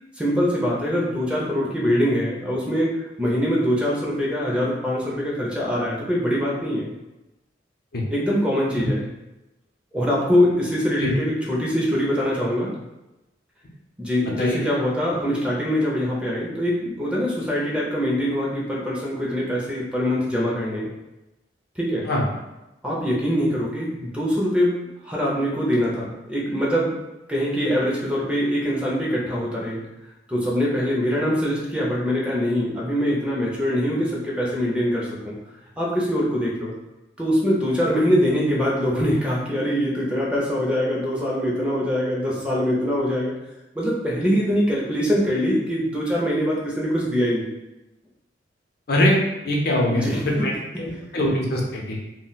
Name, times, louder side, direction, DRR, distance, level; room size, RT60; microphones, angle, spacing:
voice 1, 0.2-6.9 8.1-9.0 9.9-12.7 14.0-20.9 21.8-22.1 22.8-24.7 25.0-26.9 27.3-29.8 30.3-35.4 35.8-36.7 37.2-43.3 43.7-47.4 49.9-50.5 51.1-51.2, equal, 5° right, -4 dB, 0.5 m, -23 dB
voice 2, 49.4-50.5 50.8-52.0, left 1 dB, 55° left, -2 dB, 0.6 m, -22 dB
2.3 x 2.1 x 3.8 m, 0.97 s
head